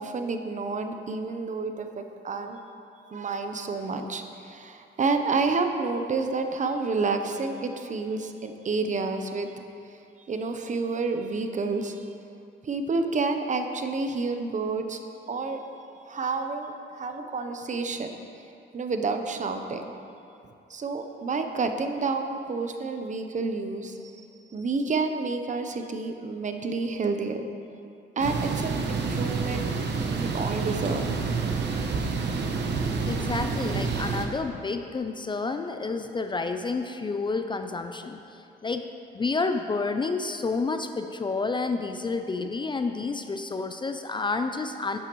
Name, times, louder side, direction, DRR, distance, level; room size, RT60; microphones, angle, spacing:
voice 1, 0.0-2.6 3.1-9.5 9.9-12.1 12.6-15.0 15.3-15.6 16.1-18.2 18.7-19.9 20.4-27.5 28.2-29.7 30.1-31.1, right 4 dB, 40° right, 6 dB, 0.8 m, -29 dB
sound 1, 28.2-34.3, right 4 dB, 60° right, 1.0 m, -28 dB
voice 2, 33.0-38.2 38.6-38.9 39.1-45.0, left 3 dB, 25° left, 7 dB, 0.4 m, -29 dB
11.5 x 8.8 x 3.1 m, 2.6 s
cardioid pair, 90°, 20 cm